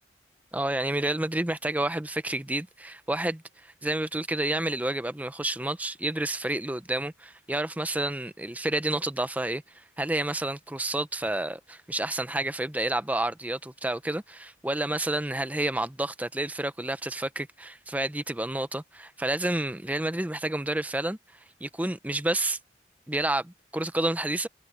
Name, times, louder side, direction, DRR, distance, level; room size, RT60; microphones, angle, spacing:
voice 1, 0.5-21.2 21.6-22.6 23.1-24.5, right 1 dB, 10° right, 0.6 m, -30 dB
head